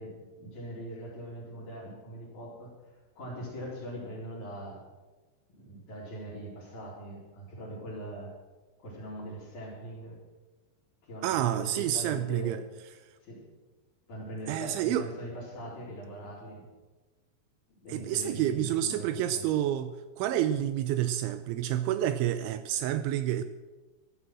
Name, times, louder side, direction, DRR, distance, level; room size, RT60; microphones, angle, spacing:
voice 1, 0.0-2.7 3.2-4.8 5.5-8.3 8.8-10.2 11.0-12.6 13.2-13.5 14.1-16.6 17.8-19.5, right 1 dB, 40° left, -5 dB, 4.9 m, -41 dB
voice 2, 11.2-12.6 14.5-15.1 17.9-23.4, right 11 dB, 85° right, 10 dB, 2.8 m, -29 dB
14.0 x 11.5 x 6.2 m, 1.2 s
omnidirectional pair, 5.6 m